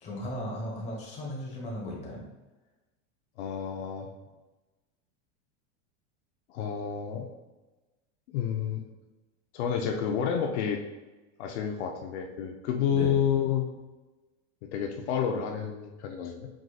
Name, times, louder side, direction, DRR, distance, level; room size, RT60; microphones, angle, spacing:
voice 1, 0.0-2.2 12.9-13.2, left 1 dB, 20° left, -3 dB, 1.1 m, -36 dB
voice 2, 3.4-4.1 6.5-7.3 8.3-8.8 9.5-10.8 11.4-13.7 14.6-16.5, left 8 dB, 75° left, 3 dB, 0.7 m, -29 dB
4.9 x 3.9 x 2.4 m, 1.1 s
supercardioid pair, 160°, 35 cm